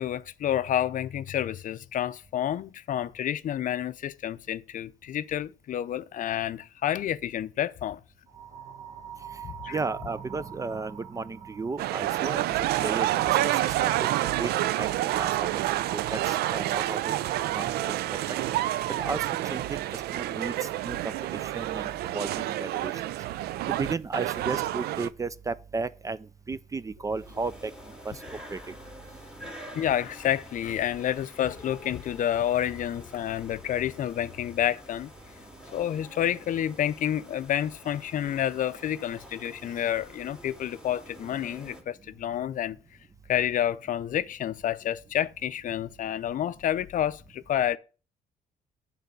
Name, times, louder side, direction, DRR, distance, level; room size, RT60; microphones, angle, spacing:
voice 1, 0.0-8.0 9.4-9.8 29.7-35.1 35.7-42.8 43.3-47.8, left 10 dB, 55° left, 0.5 m, -29 dB
sound 1, 8.3-12.2, right 7 dB, 45° right, 1.1 m, -43 dB
voice 2, 9.7-14.5 14.8-17.1 17.5-18.4 19.0-23.1 23.7-27.7 28.0-28.2 28.5-28.7, right 4 dB, 20° right, 0.3 m, -34 dB
sound 2, 11.8-25.1, right 14 dB, 90° right, 0.4 m, -28 dB
sound 3, 27.1-41.8, equal, 5° right, 1.9 m, -48 dB
8.2 x 4.1 x 6.7 m
cardioid pair, 110°, 16 cm